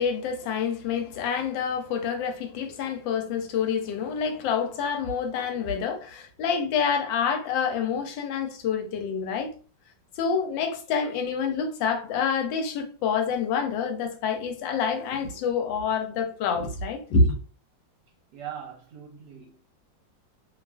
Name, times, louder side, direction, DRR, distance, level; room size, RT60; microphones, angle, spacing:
voice 1, 0.0-9.5 10.2-17.3, left 5 dB, 90° left, 1.3 m, -27 dB
voice 2, 18.3-19.6, right 9 dB, 70° right, 1.1 m, -40 dB
2.9 x 2.3 x 2.3 m
omnidirectional pair, 2.0 m